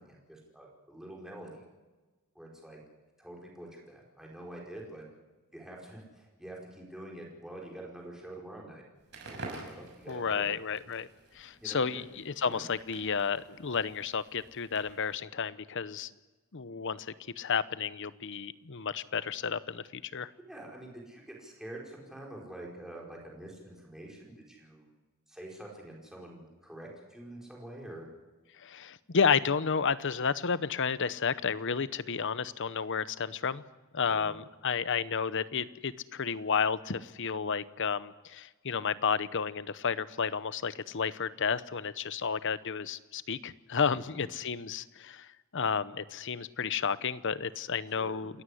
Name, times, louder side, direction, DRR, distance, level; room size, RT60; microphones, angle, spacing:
voice 1, 0.0-1.6 2.3-2.8 3.2-5.0 5.5-8.8 9.2-10.5 11.6-12.0 12.4-12.6 20.5-24.9 25.3-28.1 34.1-34.3 43.9-44.3 48.0-48.2, right 1 dB, ahead, -2 dB, 4.9 m, -46 dB
Crackle, 9.0-15.2, right 2 dB, 50° right, 5.8 m, -49 dB
voice 2, 10.1-11.1 11.3-16.1 16.5-17.1 17.4-20.3 28.6-33.6 33.9-45.3 45.5-48.4, left 6 dB, 55° left, 16 dB, 0.8 m, -31 dB
28.0 x 14.5 x 10.0 m, 1.2 s
head